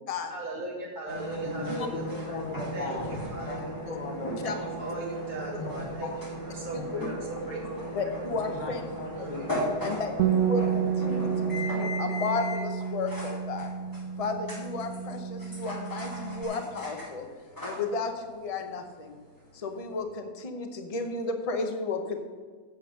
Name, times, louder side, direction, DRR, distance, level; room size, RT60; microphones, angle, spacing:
voice 1, 0.3-2.4 2.7-3.5 4.4-4.5 4.8-6.1 6.5-8.1 9.2-9.5, right 1 dB, 30° right, -3 dB, 1.1 m, -38 dB
sound 1, 1.1-20.0, right 1 dB, 10° left, 2.1 m, -37 dB
voice 2, 1.4-3.1 3.5-4.7 5.3-5.7 6.0-6.1 6.7-7.3 8.3-10.0 11.1-11.2, left 3 dB, 75° left, 0 dB, 1.7 m, -39 dB
voice 3, 7.9-8.8 9.2-9.3 9.8-13.7 14.2-17.3 17.6-19.2 19.5-22.2, left 4 dB, 30° left, 6 dB, 0.7 m, -33 dB
Bass guitar, 10.2-16.4, right 8 dB, 65° right, 0.9 m, -30 dB
8.2 x 7.0 x 6.6 m, 1.5 s
omnidirectional pair, 1.9 m